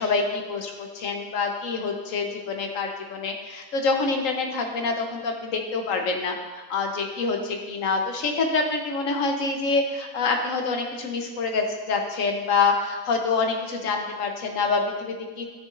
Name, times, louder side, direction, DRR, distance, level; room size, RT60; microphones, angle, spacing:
voice 1, 0.0-6.4 6.7-15.5, left 4 dB, 50° left, 3 dB, 1.1 m, -26 dB
13.0 x 6.9 x 2.6 m, 1.3 s
omnidirectional pair, 2.1 m